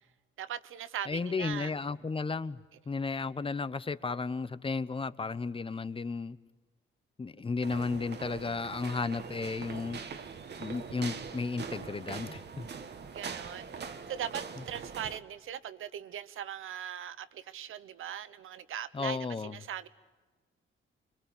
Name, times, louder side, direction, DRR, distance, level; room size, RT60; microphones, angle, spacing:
voice 1, 0.4-1.7 13.1-19.9, right 10 dB, 75° right, 1.1 m, -40 dB
voice 2, 1.1-6.4 7.2-10.0 10.6-12.7 18.9-19.6, left 4 dB, 25° left, 0.9 m, -34 dB
sound 1, 7.6-15.2, right 5 dB, 55° right, 1.7 m, -42 dB
26.0 x 22.5 x 8.5 m
cardioid pair, 95°, 21 cm